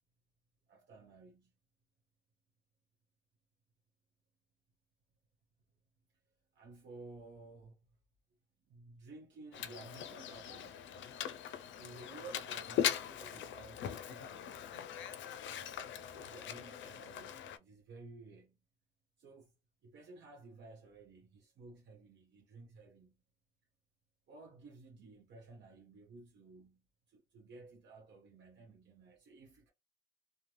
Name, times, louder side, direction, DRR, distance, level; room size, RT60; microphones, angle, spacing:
voice 1, 0.7-1.5 6.5-7.8 8.7-11.1 11.6-15.0 16.1-18.6 19.2-19.5 19.8-23.2 24.3-26.8 27.1-29.7, right 3 dB, 65° right, 0.8 m, -55 dB
Mechanisms, 9.5-17.6, left 10 dB, 70° left, 0.4 m, -40 dB
2.4 x 2.1 x 3.1 m
cardioid pair, 90°, 20 cm